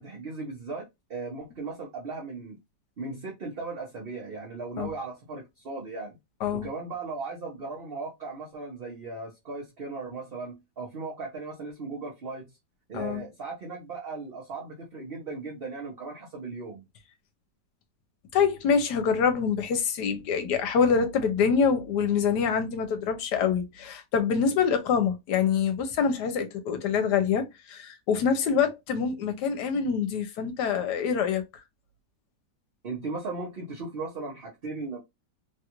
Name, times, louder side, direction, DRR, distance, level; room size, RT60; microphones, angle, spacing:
voice 1, 0.0-2.6 3.0-6.2 6.5-12.5 12.9-16.8 32.8-35.0, right 3 dB, 45° right, 0.8 m, -37 dB
voice 2, 18.3-31.4, left 6 dB, 80° left, 1.3 m, -25 dB
3.2 x 2.4 x 2.9 m
omnidirectional pair, 1.8 m